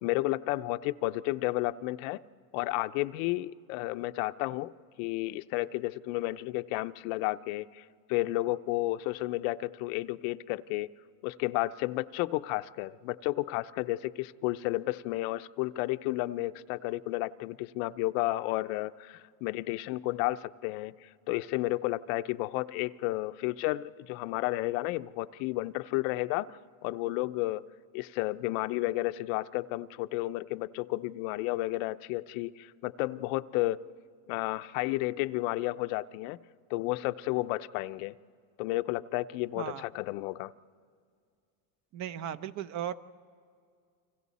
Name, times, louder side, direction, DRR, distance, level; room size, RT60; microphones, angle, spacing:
voice 1, 0.0-2.2 2.5-4.7 5.0-10.9 11.2-27.6 27.9-33.8 34.3-36.4 36.7-38.1 38.6-40.5, left 18 dB, 85° left, 13 dB, 0.7 m, -32 dB
voice 2, 41.9-42.9, right 10 dB, 45° right, 13 dB, 0.7 m, -36 dB
30.0 x 25.0 x 4.2 m, 2.2 s
cardioid pair, 140°, 40 cm